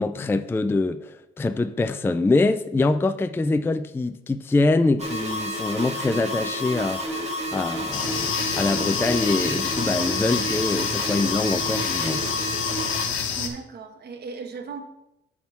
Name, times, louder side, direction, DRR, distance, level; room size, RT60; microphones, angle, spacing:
voice 1, 0.0-12.3, left 3 dB, 10° left, 0.3 m, -24 dB
sound 1, 5.0-13.1, equal, 35° right, 1.9 m, -30 dB
sound 2, 7.9-13.5, left 6 dB, 85° left, 1.1 m, -28 dB
voice 2, 13.4-14.8, right 5 dB, 55° right, 1.2 m, -36 dB
9.3 x 3.7 x 5.8 m
cardioid pair, 90°, 20 cm